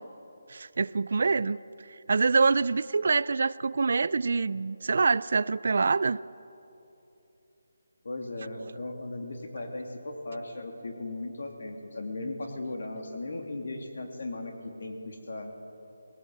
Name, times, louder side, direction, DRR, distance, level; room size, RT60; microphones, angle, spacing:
voice 1, 0.5-1.6 2.1-6.2, right 4 dB, 55° right, 19 dB, 0.4 m, -25 dB
voice 2, 8.0-14.5 14.8-15.5, left 2 dB, 60° left, 3 dB, 2.9 m, -37 dB
20.5 x 17.0 x 7.9 m, 3.0 s
hypercardioid pair, 170°, 0 cm